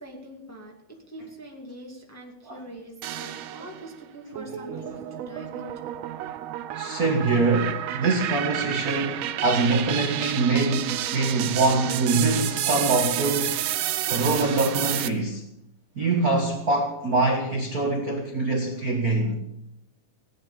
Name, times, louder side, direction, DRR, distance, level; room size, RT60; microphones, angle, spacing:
voice 1, 0.0-6.0, right 1 dB, 5° left, 1.5 m, -43 dB
sound 1, 3.0-3.9 4.4-15.1, right 12 dB, 90° right, 1.5 m, -30 dB
voice 2, 6.7-13.6 14.1-15.4 15.9-19.3, right 3 dB, 60° right, 0.9 m, -24 dB
16.5 x 10.0 x 7.0 m
omnidirectional pair, 4.0 m